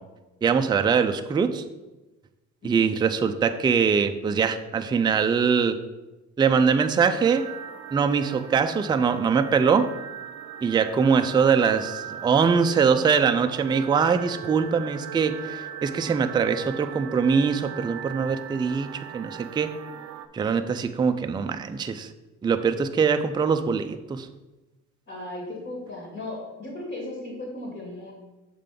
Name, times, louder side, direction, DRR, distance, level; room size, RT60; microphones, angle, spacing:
voice 1, 0.4-1.6 2.6-5.8 6.4-7.5 7.9-9.9 10.6-19.7 20.3-22.1 22.4-24.3, right 6 dB, 15° right, 7 dB, 0.3 m, -22 dB
voice 2, 2.6-2.9 25.1-28.1, left 2 dB, 45° left, -3 dB, 2.4 m, -36 dB
sound 1, 7.1-20.3, right 9 dB, 65° right, 0.6 m, -39 dB
6.6 x 3.7 x 5.2 m, 1.1 s
cardioid pair, 105°, 30 cm